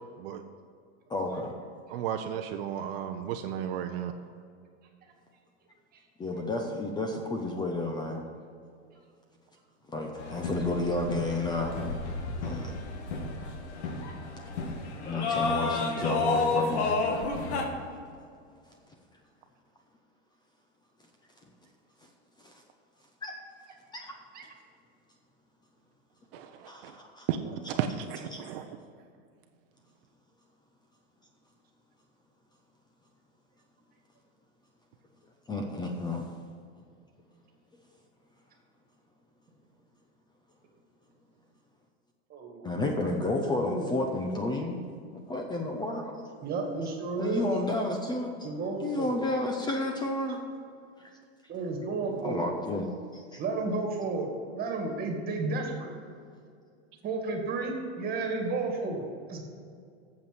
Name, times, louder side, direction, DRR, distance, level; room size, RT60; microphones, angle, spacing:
voice 1, 1.1-1.5 6.2-8.2 9.9-11.8 12.4-12.7 15.0-16.8 22.4-22.5 23.2-23.3 23.9-24.1 26.7-27.3 28.3-28.4 35.5-36.3 42.6-44.8 45.1-46.1 47.2-48.5 48.8-50.4 51.0-51.1 52.2-53.4, left 2 dB, 10° left, 2 dB, 0.7 m, -31 dB
voice 2, 1.9-4.1 26.3-26.9 27.3-27.4 27.8-28.7, right 9 dB, 60° right, 6 dB, 0.7 m, -33 dB
sound 1, 10.2-17.7, left 3 dB, 75° left, 1.7 m, -31 dB
voice 3, 42.3-44.0 44.6-44.7 46.4-47.5 48.4-49.1 50.3-50.4 51.5-52.4 53.4-55.9 57.0-59.4, right 3 dB, 25° right, 2 dB, 2.0 m, -33 dB
8.3 x 7.2 x 7.7 m, 2.3 s
supercardioid pair, 140°, 34 cm